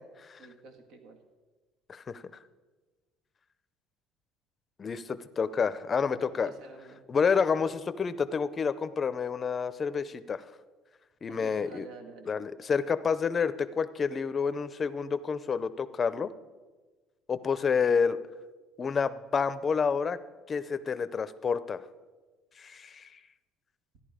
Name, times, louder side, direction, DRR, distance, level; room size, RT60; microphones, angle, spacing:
voice 1, 0.4-1.2 6.4-7.0 11.3-12.3, right 3 dB, 70° right, 6 dB, 1.8 m, -48 dB
voice 2, 1.9-2.2 4.8-6.5 7.1-10.4 11.2-11.9 12.2-16.3 17.3-18.2 18.8-20.2 20.5-21.8 22.6-23.2, left 6 dB, 30° left, 14 dB, 0.6 m, -29 dB
14.0 x 11.0 x 5.0 m, 1.3 s
cardioid pair, 120°, 0 cm